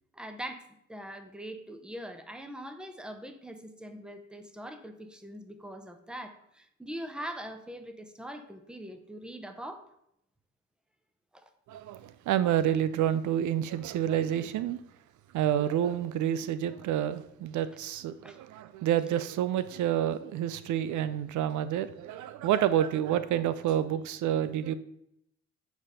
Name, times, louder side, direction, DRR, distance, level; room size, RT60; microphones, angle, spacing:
voice 1, 0.1-9.8 11.3-11.4 18.2-18.4, equal, 5° right, 0.8 m, -42 dB
voice 2, 11.7-14.8 15.3-24.7, right 10 dB, 75° right, 0.5 m, -29 dB
8.8 x 3.5 x 5.5 m
cardioid pair, 90°, 30 cm